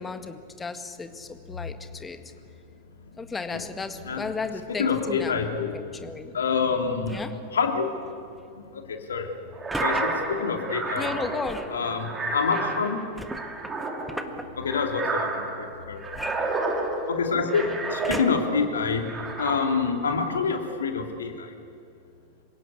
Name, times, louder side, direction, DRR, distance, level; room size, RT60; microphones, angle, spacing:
voice 1, 0.0-2.2 3.2-5.5 5.7-6.3 7.1-7.3 11.0-11.6, left 4 dB, 15° left, 8 dB, 1.8 m, -34 dB
voice 2, 4.7-5.7 6.3-7.2 7.5-7.9 8.7-9.3 9.8-11.1 11.7-13.0 14.6-16.0 17.1-19.1 19.4-21.5, left 5 dB, 70° left, 4 dB, 2.7 m, -27 dB
sound 1, 7.0-7.4 9.7-10.0 11.4-11.8 13.2-14.4 16.1-17.1 18.0-18.6 19.2-19.3, equal, ahead, 1.6 m, -37 dB
sound 2, 9.6-18.6 19.0-20.1, right 3 dB, 20° right, 3.4 m, -31 dB
27.0 x 17.0 x 8.4 m, 2.4 s
figure-of-eight pair, 90°, 0 cm